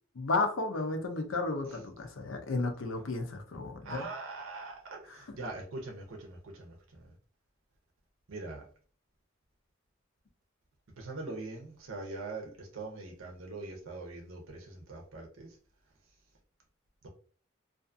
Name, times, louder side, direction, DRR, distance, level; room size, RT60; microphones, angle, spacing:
voice 1, 0.2-4.1 5.1-5.4, left 3 dB, 75° left, 6 dB, 0.5 m, -33 dB
voice 2, 3.9-6.7 8.3-8.6 11.0-15.5, right 3 dB, 85° right, 1 dB, 0.6 m, -42 dB
2.5 x 2.4 x 2.5 m, 0.42 s
head